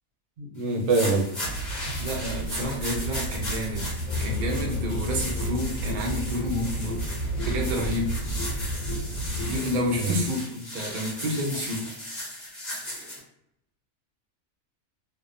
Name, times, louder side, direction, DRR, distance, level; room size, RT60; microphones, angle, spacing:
voice 1, 0.4-1.3 10.0-10.2, right 3 dB, 65° right, 1 dB, 0.8 m, -24 dB
sound 1, 0.7-13.2, left 1 dB, 20° left, 0.7 m, -37 dB
Animal, 1.4-9.6, right 2 dB, 60° left, 1.1 m, -33 dB
voice 2, 2.0-3.9 4.2-7.0 7.4-8.1 9.4-11.9, left 1 dB, 85° right, -1 dB, 0.4 m, -29 dB
sound 2, 4.1-10.3, left 1 dB, 80° left, 1.0 m, -34 dB
2.7 x 2.0 x 2.5 m, 0.79 s
omnidirectional pair, 1.5 m